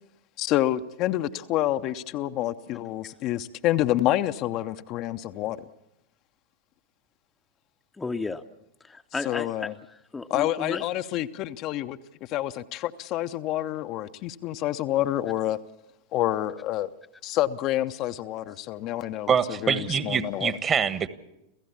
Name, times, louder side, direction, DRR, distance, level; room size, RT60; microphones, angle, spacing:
voice 1, 0.4-5.7 9.3-9.7 10.3-12.0 12.3-15.6 16.1-16.9 17.2-20.5, left 14 dB, 40° left, 9 dB, 0.8 m, -28 dB
voice 2, 8.0-8.4 8.8-10.9, left 4 dB, 10° left, 6 dB, 0.8 m, -34 dB
voice 3, 19.3-21.1, right 7 dB, 25° right, 13 dB, 1.4 m, -25 dB
28.5 x 15.5 x 7.1 m, 0.87 s
figure-of-eight pair, 90°, 0 cm